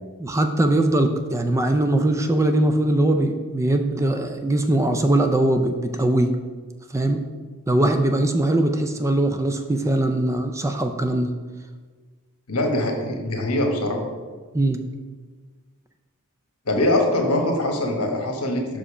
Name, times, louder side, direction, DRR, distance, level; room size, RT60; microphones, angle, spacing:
voice 1, 0.2-6.3 6.9-7.2 7.7-11.3 14.5-14.8, right 1 dB, 15° right, 6 dB, 0.3 m, -21 dB
voice 2, 12.5-14.0 16.6-18.8, left 1 dB, 70° left, 3 dB, 1.2 m, -23 dB
5.7 x 5.1 x 4.9 m, 1.4 s
head